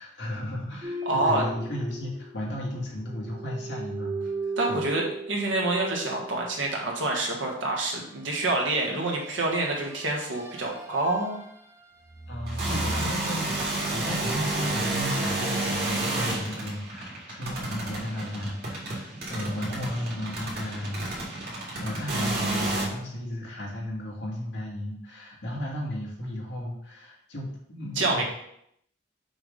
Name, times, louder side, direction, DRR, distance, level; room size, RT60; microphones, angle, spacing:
voice 1, 0.0-4.8 12.3-28.2, left 1 dB, 65° left, -3 dB, 1.9 m, -34 dB
sound 1, 0.8-2.8 3.0-6.9 8.5-11.7 12.0-16.4, right 2 dB, 15° right, 0.6 m, -38 dB
voice 2, 1.0-1.4 4.6-11.4 28.0-28.2, right 2 dB, 85° right, -1 dB, 1.5 m, -27 dB
sound 2, 12.5-22.9, right 2 dB, 55° right, 2.1 m, -31 dB
6.2 x 3.4 x 5.2 m, 0.74 s
head